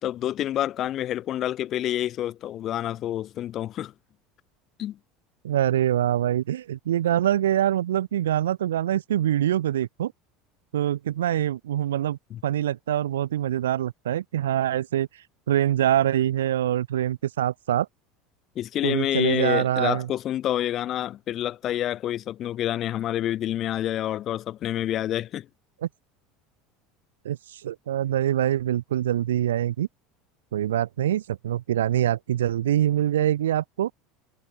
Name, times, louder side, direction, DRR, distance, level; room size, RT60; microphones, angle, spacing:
voice 1, 0.0-3.9 4.8-5.0 12.3-12.4 18.6-25.5, left 12 dB, 40° left, 3.4 m, -28 dB
voice 2, 5.4-10.1 10.7-17.9 18.8-20.1 25.8-25.9 27.2-29.9 30.5-33.9, right 11 dB, 70° right, 2.4 m, -24 dB
figure-of-eight pair, 70°, 0 cm